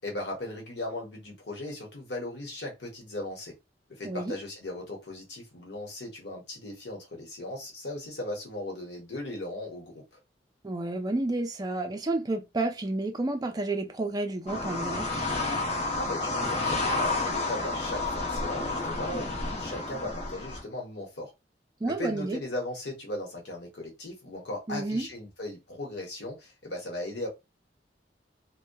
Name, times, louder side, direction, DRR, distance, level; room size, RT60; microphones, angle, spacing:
voice 1, 0.0-3.5 3.9-10.2 16.0-21.3 21.8-27.3, left 1 dB, 75° left, 1.0 m, -37 dB
voice 2, 10.6-15.1 21.8-22.4 24.7-25.1, right 2 dB, 20° right, 0.4 m, -30 dB
sound 1, 14.5-20.6, left 2 dB, 40° left, 0.8 m, -30 dB
2.7 x 2.1 x 2.2 m
head